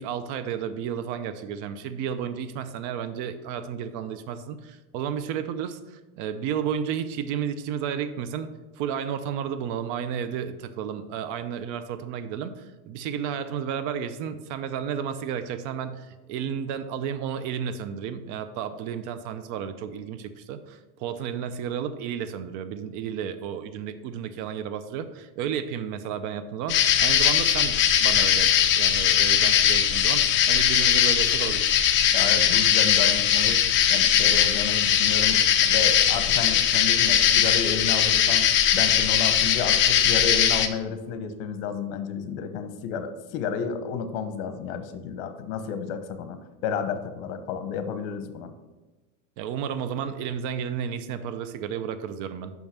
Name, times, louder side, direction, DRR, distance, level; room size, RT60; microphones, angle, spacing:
voice 1, 0.0-8.5 8.8-28.5 28.8-31.7 49.4-52.5, right 8 dB, 50° right, 11 dB, 0.7 m, -32 dB
sound 1, 26.7-40.7, left 9 dB, 30° left, 0.6 m, -20 dB
voice 2, 32.1-33.6 33.9-38.5 38.7-48.5, left 6 dB, 65° left, 9 dB, 1.0 m, -31 dB
6.0 x 5.5 x 5.9 m, 1.2 s
supercardioid pair, 135°, 39 cm